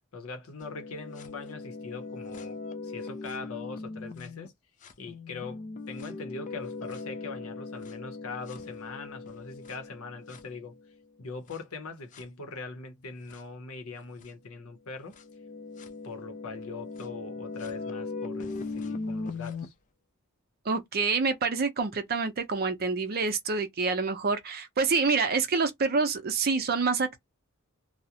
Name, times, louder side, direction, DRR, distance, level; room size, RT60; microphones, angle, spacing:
voice 1, 0.1-4.5 5.0-10.8 11.2-15.2 16.0-19.7, left 4 dB, 75° left, 0.7 m, -42 dB
sound 1, 0.6-4.5 4.8-10.9 11.5-11.6 12.1-12.2 13.3-13.4 14.2-14.3 15.1-19.7, left 3 dB, 35° left, 0.4 m, -39 dB
voice 2, 20.7-27.2, right 4 dB, 45° right, 0.6 m, -27 dB
2.3 x 2.0 x 2.7 m
head